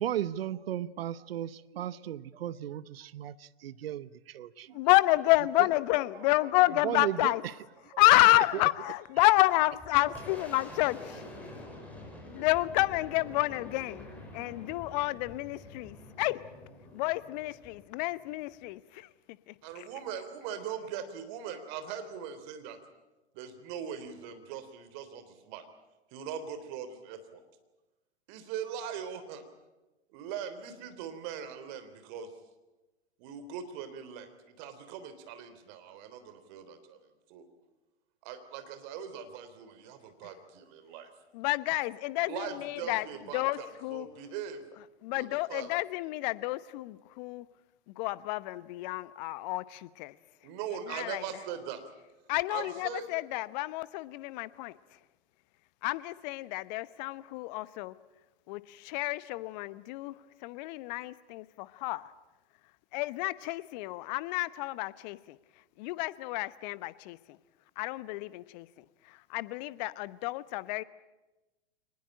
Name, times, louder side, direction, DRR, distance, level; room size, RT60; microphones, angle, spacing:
voice 1, 0.0-4.8 6.8-7.3, right 11 dB, 60° right, 19 dB, 0.9 m, -35 dB
voice 2, 4.7-7.4 8.0-11.3 12.3-14.1 14.3-16.4 16.9-18.8 19.5-19.9 40.2-40.3 41.3-43.1 43.3-44.1 45.0-47.5 47.9-50.1 50.9-51.2 52.3-55.0 55.8-57.9 58.5-60.2 60.4-62.1 62.9-65.4 65.8-67.4 67.8-70.8, left 19 dB, 40° left, 17 dB, 1.0 m, -29 dB
Boom, 9.3-18.7, left 1 dB, 5° left, 6.4 m, -47 dB
voice 3, 19.6-22.8 23.3-25.6 26.1-27.4 28.3-29.4 30.1-32.3 33.2-34.3 34.6-37.0 37.3-37.5 38.2-41.1 42.3-44.6 45.1-45.7 50.4-51.8 52.5-53.1, right 8 dB, 45° right, 10 dB, 3.6 m, -41 dB
24.0 x 20.0 x 8.9 m, 1.1 s
figure-of-eight pair, 105°, 33 cm